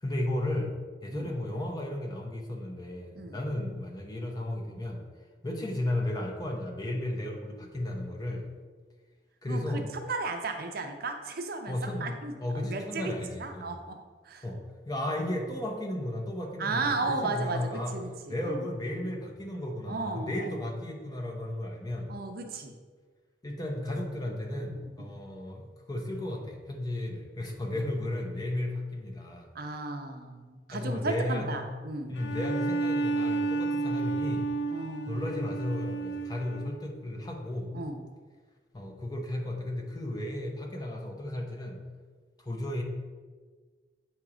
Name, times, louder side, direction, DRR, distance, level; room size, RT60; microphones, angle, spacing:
voice 1, 0.0-0.7 1.0-5.0 5.4-8.4 9.4-9.9 11.7-13.7 14.4-14.6 14.9-17.9 18.3-22.1 23.4-29.5 30.7-31.6 32.1-34.5 35.1-37.7 38.7-41.8 42.4-42.8, left 1 dB, 25° left, 1 dB, 0.8 m, -34 dB
voice 2, 3.1-3.5 9.5-13.1 13.4-14.0 14.2-14.5 16.6-18.6 19.9-20.5 22.1-22.7 24.8-25.2 27.7-27.9 29.5-32.2 34.7-35.3 37.7-38.0, right 3 dB, 60° right, 5 dB, 0.6 m, -35 dB
Bowed string instrument, 32.1-36.9, right 3 dB, 85° left, 0.7 m, -31 dB
7.9 x 2.9 x 4.9 m, 1.5 s
head